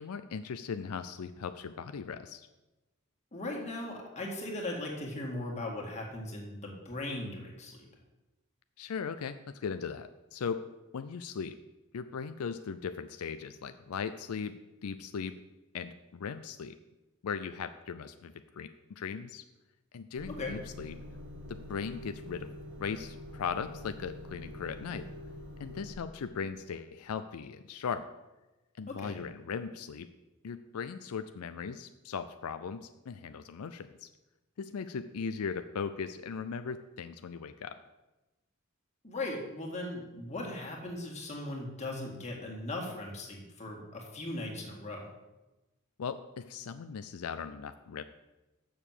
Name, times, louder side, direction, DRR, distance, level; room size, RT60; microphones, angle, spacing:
voice 1, 0.0-2.5 8.8-10.7 10.9-11.5 11.9-15.3 15.7-16.8 17.2-19.4 19.9-21.0 21.5-22.5 22.8-25.1 25.6-28.1 28.8-30.1 30.4-34.1 34.6-37.8 46.0-48.0, left 6 dB, 85° left, 10 dB, 0.4 m, -38 dB
voice 2, 3.3-7.9 20.3-20.6 28.9-29.2 39.0-45.1, left 2 dB, 30° left, 0 dB, 1.9 m, -38 dB
Motor vehicle (road) / Engine starting / Idling, 20.2-25.9, left 1 dB, 65° right, 1.3 m, -46 dB
7.0 x 6.4 x 7.4 m, 1.1 s
head